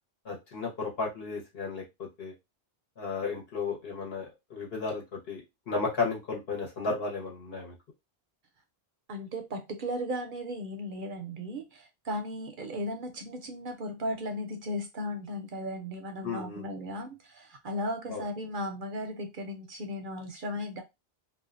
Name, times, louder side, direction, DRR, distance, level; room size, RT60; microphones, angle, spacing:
voice 1, 0.2-2.3 3.0-5.4 5.7-7.7 16.2-16.7 18.1-18.2, left 4 dB, 65° left, -1 dB, 1.2 m, -34 dB
voice 2, 9.1-20.8, equal, 60° right, 5 dB, 0.6 m, -36 dB
2.5 x 2.2 x 2.4 m, 0.22 s
omnidirectional pair, 1.1 m